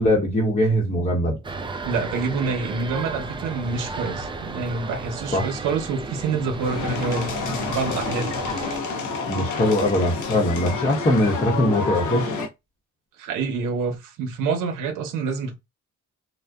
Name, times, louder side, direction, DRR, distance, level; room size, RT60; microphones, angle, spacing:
voice 1, 0.0-1.4 5.3-5.5 9.3-12.3, left 1 dB, 20° left, 0.8 m, -21 dB
sound 1, 1.4-8.8, right 3 dB, 15° right, 0.3 m, -34 dB
voice 2, 1.8-8.3 13.2-15.5, right 4 dB, 90° right, 0.7 m, -27 dB
sound 2, 6.6-12.5, left 4 dB, 80° left, 0.7 m, -29 dB
2.6 x 2.1 x 2.2 m
cardioid pair, 90°, 30 cm